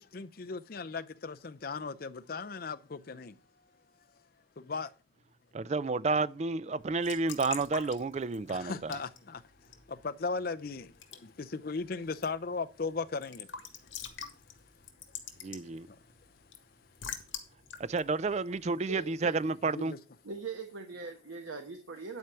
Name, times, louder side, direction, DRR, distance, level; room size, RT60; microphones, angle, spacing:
voice 1, 0.0-3.3 4.6-4.9 8.5-9.4 9.9-10.9 11.2-13.5 19.7-20.0, left 4 dB, 45° left, 0.5 m, -37 dB
voice 2, 5.5-9.0 15.4-15.9 17.8-19.9, right 3 dB, 35° right, 0.3 m, -31 dB
Raindrop / Drip / Trickle dribble, 6.8-19.3, left 7 dB, 75° left, 1.9 m, -47 dB
voice 3, 18.9-19.3 20.2-22.2, right 4 dB, 85° right, 1.2 m, -41 dB
10.5 x 4.7 x 6.8 m
head